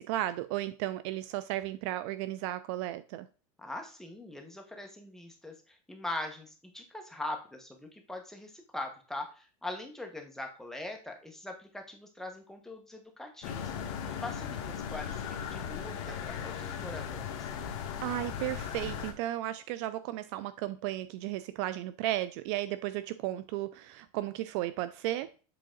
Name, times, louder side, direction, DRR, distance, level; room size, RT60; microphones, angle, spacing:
voice 1, 0.0-3.3 18.0-25.3, right 14 dB, 50° right, 0.4 m, -34 dB
voice 2, 3.6-17.5, left 2 dB, ahead, 1.1 m, -42 dB
sound 1, 13.4-19.1, left 8 dB, 60° left, 1.3 m, -37 dB
7.6 x 3.8 x 3.8 m
supercardioid pair, 145°, 19 cm